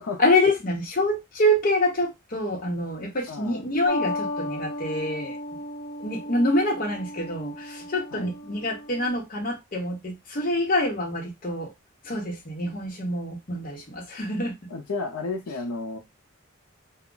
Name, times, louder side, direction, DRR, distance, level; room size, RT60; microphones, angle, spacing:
voice 1, 0.2-5.6 6.0-11.7 12.0-14.6, left 1 dB, 40° left, 0.8 m, -26 dB
voice 2, 3.3-3.7 8.1-8.3 14.7-16.0, left 3 dB, 85° left, 0.6 m, -32 dB
sound 1, 3.9-9.1, left 2 dB, 70° left, 0.9 m, -35 dB
2.4 x 2.1 x 3.7 m
head